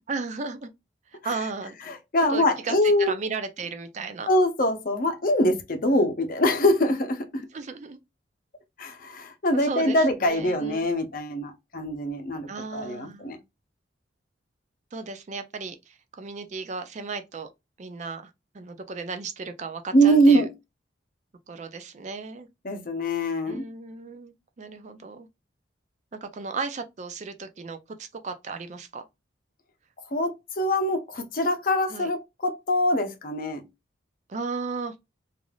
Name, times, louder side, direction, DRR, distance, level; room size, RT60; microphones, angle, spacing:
voice 1, 0.1-0.7 1.1-1.7 2.3-4.3 7.5-8.0 9.5-10.9 12.5-13.4 14.9-17.5 17.8-18.3 18.5-20.4 21.5-22.5 23.5-25.3 26.1-29.1 31.9-32.1 34.3-34.9, right 4 dB, 40° right, 0.4 m, -35 dB
voice 2, 1.9-3.1 4.3-7.5 8.8-13.4 19.9-20.5 22.6-23.6 30.1-33.7, equal, 45° left, 0.7 m, -23 dB
3.2 x 2.5 x 2.3 m
head